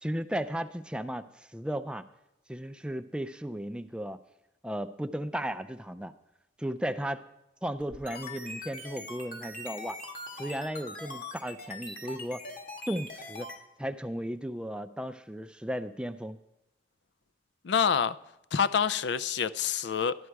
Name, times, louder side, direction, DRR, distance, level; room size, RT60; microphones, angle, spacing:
voice 1, 0.0-2.0 2.5-4.2 4.6-6.1 6.6-7.2 7.6-10.0 10.4-12.4 12.9-13.5 13.8-16.4, equal, 5° right, 0.4 m, -35 dB
sound 1, 7.8-13.6, left 2 dB, 45° left, 1.9 m, -42 dB
voice 2, 17.6-18.2 18.5-20.1, left 7 dB, 70° left, 0.4 m, -27 dB
12.0 x 11.5 x 4.7 m
head